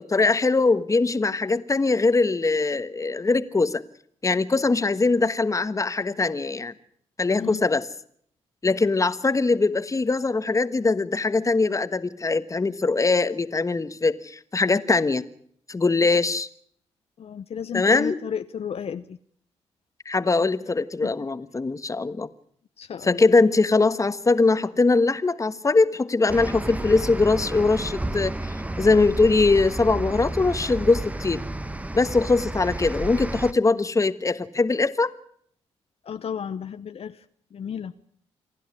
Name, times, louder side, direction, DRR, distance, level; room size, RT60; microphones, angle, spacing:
voice 1, 0.0-3.8 4.2-6.7 7.2-7.8 8.6-15.3 15.7-16.5 17.7-18.1 20.0-22.3 23.0-28.3 28.8-31.4 31.9-35.1, left 3 dB, 25° left, 14 dB, 1.3 m, -22 dB
voice 2, 17.2-19.2 21.0-21.1 22.8-23.2 36.0-37.3 37.5-37.9, left 8 dB, 55° left, 10 dB, 0.9 m, -33 dB
sound 1, 26.3-33.5, right 2 dB, 10° right, 1.1 m, -31 dB
27.5 x 11.5 x 9.8 m, 0.64 s
cardioid pair, 70°, 12 cm